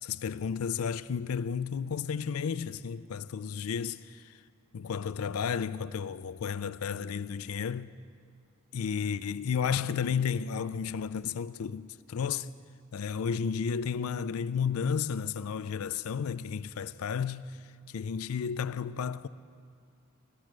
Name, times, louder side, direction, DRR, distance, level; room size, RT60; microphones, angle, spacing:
voice 1, 0.0-4.4 4.7-7.9 8.7-12.6 12.9-19.3, left 6 dB, 85° left, 0.4 m, -32 dB
15.0 x 13.5 x 6.1 m
head